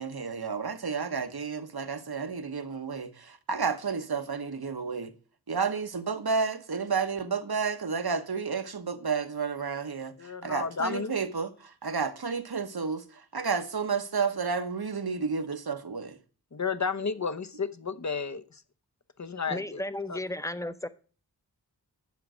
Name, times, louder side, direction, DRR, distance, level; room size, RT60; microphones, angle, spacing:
voice 1, 0.0-5.1 5.5-16.2, right 5 dB, 65° right, 1.2 m, -31 dB
voice 2, 10.2-11.1 16.5-18.6 19.2-19.8 20.1-20.2, left 5 dB, 45° left, 0.9 m, -32 dB
voice 3, 19.5-20.9, left 1 dB, 10° left, 0.8 m, -34 dB
10.5 x 7.6 x 6.2 m
wide cardioid pair, 60°, 40 cm